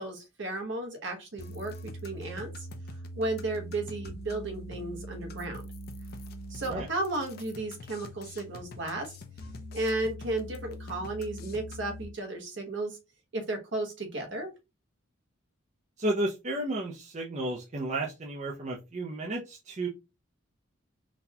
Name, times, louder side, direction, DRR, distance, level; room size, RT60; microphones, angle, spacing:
voice 1, 0.0-1.7 2.0-2.5 3.1-5.6 6.5-9.1 9.7-13.0 13.3-14.5, right 2 dB, 55° right, 4 dB, 0.9 m, -34 dB
sound 1, 1.4-12.0, equal, 45° left, 0.5 m, -43 dB
voice 2, 16.0-19.9, right 1 dB, 35° right, -2 dB, 0.5 m, -32 dB
4.0 x 2.2 x 2.8 m, 0.26 s
head